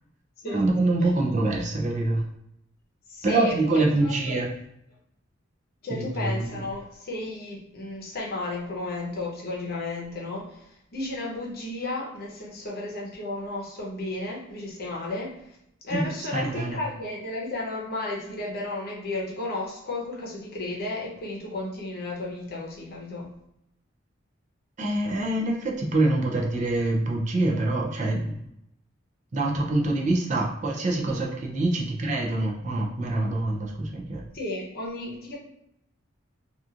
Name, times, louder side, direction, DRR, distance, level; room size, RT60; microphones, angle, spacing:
voice 1, 0.4-2.2 3.2-4.5 5.9-6.6 15.9-16.8 24.8-28.3 29.3-34.2, right 2 dB, 40° right, 0 dB, 0.4 m, -25 dB
voice 2, 3.1-4.4 5.8-15.6 15.8-23.3 34.3-35.4, left 2 dB, 50° left, -3 dB, 0.7 m, -33 dB
2.8 x 2.4 x 2.4 m, 0.80 s
head